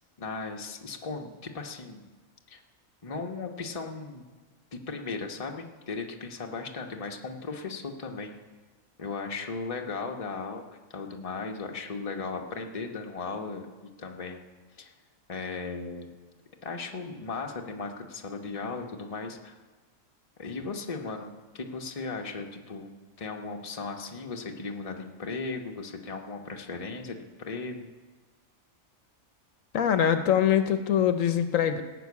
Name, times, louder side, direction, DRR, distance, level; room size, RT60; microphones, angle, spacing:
voice 1, 0.2-2.1 2.5-2.6 3.0-4.2 4.7-8.4 9.0-14.5 14.8-14.9 15.3-16.1 16.6-19.6 20.4-22.9 23.2-27.9, left 4 dB, 30° left, 3 dB, 1.0 m, -37 dB
voice 2, 29.7-31.8, left 9 dB, 75° left, 9 dB, 1.1 m, -23 dB
17.5 x 6.1 x 8.4 m, 1.3 s
omnidirectional pair, 1.4 m